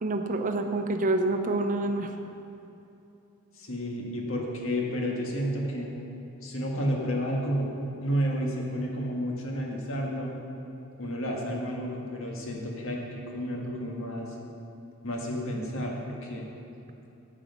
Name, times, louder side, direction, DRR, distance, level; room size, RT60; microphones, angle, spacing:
voice 1, 0.0-2.1, right 2 dB, 40° right, 6 dB, 0.6 m, -27 dB
voice 2, 3.6-5.9 6.4-7.7 8.0-10.4 11.0-14.3 15.0-16.5, equal, 65° left, -1 dB, 1.6 m, -31 dB
10.0 x 7.6 x 5.2 m, 2.8 s
head